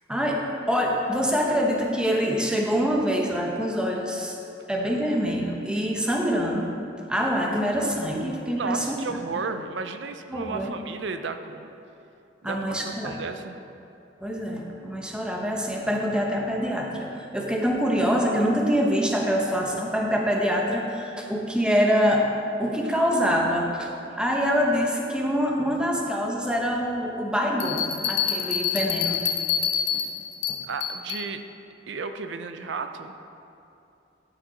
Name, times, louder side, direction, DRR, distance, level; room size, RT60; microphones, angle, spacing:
voice 1, 0.1-0.4 0.7-4.3 4.7-6.7 7.1-8.9 10.3-10.7 12.4-13.1 14.2-22.2 22.6-29.2 30.5-30.6, equal, 5° right, -1 dB, 0.8 m, -25 dB
voice 2, 8.6-11.7 12.4-13.6 30.7-31.4 31.9-33.2, right 4 dB, 65° right, 8 dB, 0.5 m, -33 dB
sound 1, 27.6-31.3, left 8 dB, 80° left, 0.8 m, -27 dB
12.0 x 6.0 x 4.0 m, 2.8 s
head